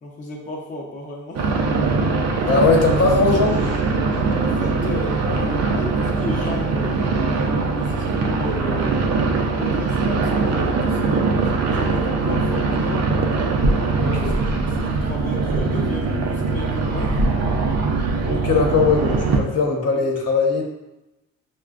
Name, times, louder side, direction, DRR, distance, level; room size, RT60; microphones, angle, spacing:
voice 1, 0.0-1.5 4.4-9.0 9.6-13.1 13.7-17.2, left 2 dB, 25° left, -2 dB, 0.7 m, -34 dB
sound 1, 1.3-19.4, right 3 dB, 60° right, 0.6 m, -21 dB
voice 2, 2.4-3.8 14.0-14.3 18.2-20.6, left 4 dB, 55° left, 0 dB, 0.9 m, -20 dB
5.4 x 2.2 x 2.4 m, 0.95 s
cardioid pair, 90°, 30 cm